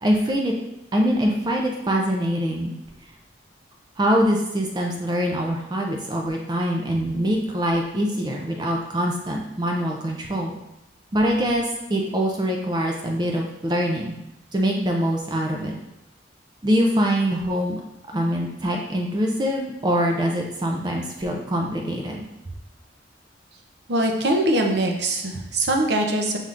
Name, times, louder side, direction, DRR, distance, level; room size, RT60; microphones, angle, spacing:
voice 1, 0.0-0.5 0.9-2.7 4.0-10.6 11.1-14.1 14.5-15.8 16.6-17.8 18.1-22.2, equal, 20° right, 1 dB, 0.4 m, -24 dB
voice 2, 23.9-26.4, right 1 dB, 65° right, 2 dB, 0.6 m, -22 dB
5.5 x 3.5 x 2.5 m, 0.88 s
head